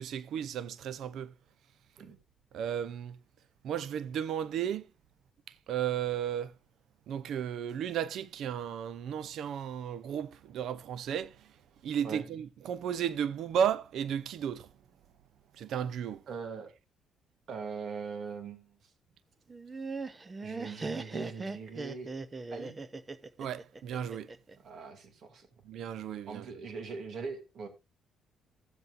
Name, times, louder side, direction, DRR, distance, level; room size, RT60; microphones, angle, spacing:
voice 1, 0.0-1.3 2.5-3.2 3.6-4.9 5.5-6.6 7.1-11.5 11.8-14.7 15.5-16.2 23.4-24.3 25.7-26.6, right 9 dB, 75° right, 0.6 m, -34 dB
voice 2, 16.3-16.7 17.5-18.8 20.4-22.1 22.5-22.8 24.6-25.5 26.3-27.7, right 5 dB, 60° right, 2.6 m, -41 dB
Laughter, 19.5-24.6, right 3 dB, 25° right, 0.8 m, -39 dB
15.0 x 7.8 x 2.6 m
cardioid pair, 90°, 0 cm